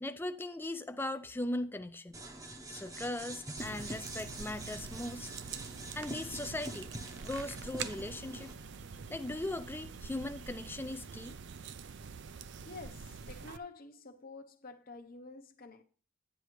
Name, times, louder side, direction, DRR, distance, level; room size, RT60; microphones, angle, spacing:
voice 1, 0.0-2.2 2.7-5.3 6.0-6.9 7.2-8.5 9.1-11.3, left 1 dB, 10° left, 0.3 m, -39 dB
sound 1, 2.1-8.5, right 1 dB, 15° right, 0.8 m, -45 dB
sound 2, 3.6-13.6, right 6 dB, 55° right, 0.4 m, -46 dB
sound 3, 5.0-11.3, right 1 dB, 75° right, 2.4 m, -61 dB
voice 2, 12.7-15.8, left 3 dB, 40° left, 0.8 m, -49 dB
10.5 x 9.7 x 3.1 m
head